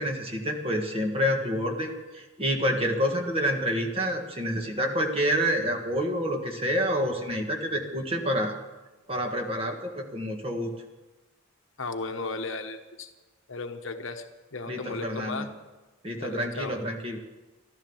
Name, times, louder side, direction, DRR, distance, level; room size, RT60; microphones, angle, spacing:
voice 1, 0.0-8.5 9.1-10.7 14.7-15.5 16.0-17.2, equal, 25° right, 3 dB, 1.6 m, -28 dB
voice 2, 11.8-13.1 13.5-14.2 14.5-15.5 16.2-16.8, left 3 dB, 60° left, 7 dB, 1.0 m, -35 dB
13.5 x 12.5 x 7.1 m, 1.2 s
head